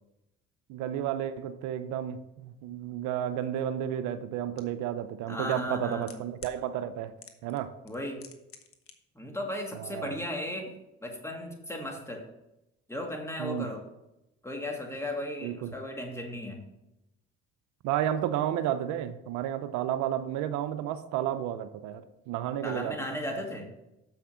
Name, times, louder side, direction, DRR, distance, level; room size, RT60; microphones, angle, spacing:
voice 1, 0.7-7.1 7.4-7.7 9.8-10.1 13.4-13.7 15.4-15.7 17.8-23.0, right 10 dB, 75° right, 10 dB, 0.6 m, -32 dB
sound 1, 4.6-4.7 5.6-6.6 7.2-7.6 7.9-8.9 9.2-9.3, left 7 dB, 50° left, 1.2 m, -48 dB
voice 2, 5.3-6.1 7.8-8.2 9.2-10.7 11.0-12.2 12.9-13.8 14.4-16.7 22.6-23.7, left 1 dB, 10° left, 2 dB, 2.1 m, -35 dB
7.1 x 5.8 x 5.7 m, 0.90 s
supercardioid pair, 70°, 29 cm